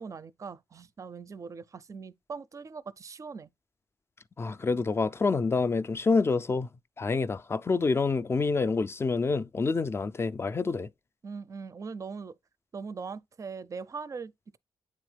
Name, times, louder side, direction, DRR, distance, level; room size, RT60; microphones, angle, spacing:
voice 1, 0.0-3.5 11.2-12.4 12.7-14.6, right 5 dB, 35° right, 0.4 m, -41 dB
voice 2, 4.4-6.7 7.0-10.9, left 4 dB, 30° left, 0.4 m, -27 dB
8.4 x 3.6 x 3.3 m
cardioid pair, 85°, 9 cm